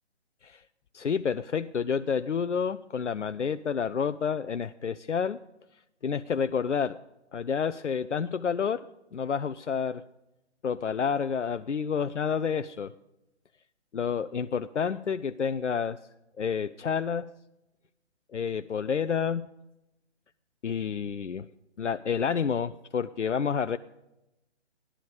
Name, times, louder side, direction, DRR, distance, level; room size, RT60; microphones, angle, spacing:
voice 1, 0.9-5.4 6.0-7.0 7.3-8.8 9.1-10.0 10.6-12.9 13.9-16.0 16.4-17.3 18.3-19.5 20.6-21.5 21.8-23.8, left 6 dB, 85° left, 12 dB, 0.6 m, -29 dB
16.0 x 11.5 x 4.9 m, 0.95 s
figure-of-eight pair, 145°, 35 cm